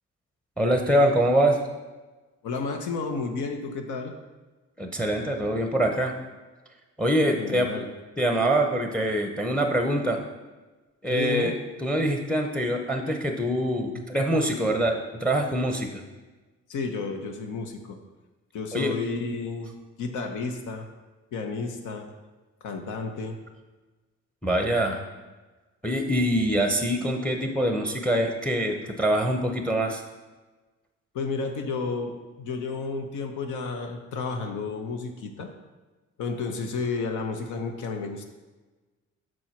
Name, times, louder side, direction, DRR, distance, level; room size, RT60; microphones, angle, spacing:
voice 1, 0.6-1.6 4.8-6.1 7.0-7.7 8.2-10.2 11.0-11.5 11.8-16.0 18.7-19.0 24.4-25.0 25.8-30.0, right 1 dB, 5° left, 4 dB, 0.7 m, -24 dB
voice 2, 2.4-4.1 7.4-7.9 11.1-11.6 13.9-14.1 16.7-18.0 18.5-19.7 20.0-20.9 21.3-22.1 22.6-23.4 31.1-35.5 36.2-38.2, left 4 dB, 80° left, 5 dB, 0.9 m, -31 dB
6.2 x 4.4 x 4.4 m, 1.2 s
cardioid pair, 90°, 30 cm